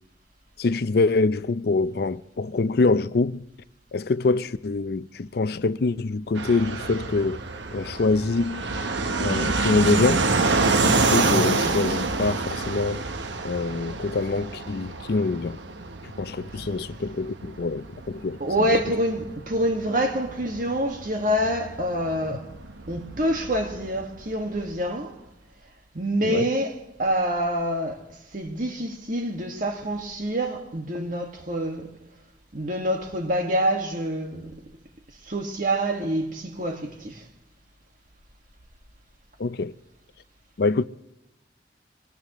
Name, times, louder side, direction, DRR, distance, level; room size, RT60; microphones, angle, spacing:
voice 1, 0.6-3.5 3.9-7.4 7.7-8.6 9.2-10.3 10.9-13.0 13.4-15.6 16.0-18.4 26.2-26.4 39.4-39.7 40.6-40.8, left 3 dB, 60° left, 0.5 m, -25 dB
Fixed-wing aircraft airplane, 6.4-24.7, right 3 dB, 80° right, 1.0 m, -28 dB
voice 2, 18.4-22.5 22.9-25.2 25.9-28.0 28.3-32.0 32.5-34.6 35.3-37.2, equal, 50° right, 1.8 m, -26 dB
23.5 x 18.0 x 3.1 m
head